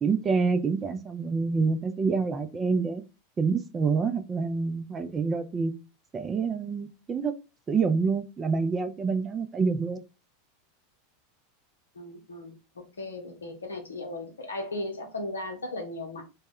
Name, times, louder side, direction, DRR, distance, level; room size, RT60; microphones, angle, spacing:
voice 1, 0.0-3.0 3.4-5.7 6.1-7.3 7.7-10.0, right 4 dB, 25° right, 0.4 m, -27 dB
voice 2, 11.9-16.2, left 2 dB, 90° left, 0.6 m, -37 dB
2.1 x 2.1 x 3.5 m
hypercardioid pair, 95°, 0 cm